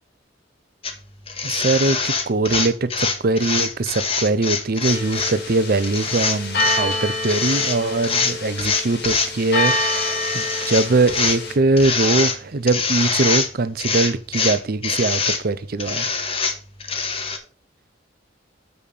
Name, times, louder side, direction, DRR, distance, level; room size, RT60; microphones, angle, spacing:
sound 1, 0.8-0.9 1.3-5.3 5.8-6.8 7.2-7.8 8.0-9.3 9.6-11.4 11.8-12.4 12.7-13.5 13.8-15.4 15.8-17.4, left 5 dB, 30° left, 1.2 m, -24 dB
voice 1, 1.4-16.1, right 3 dB, 55° right, 0.6 m, -22 dB
sound 2, 4.8-11.5, left 1 dB, 60° left, 2.1 m, -27 dB
6.6 x 5.3 x 5.4 m
head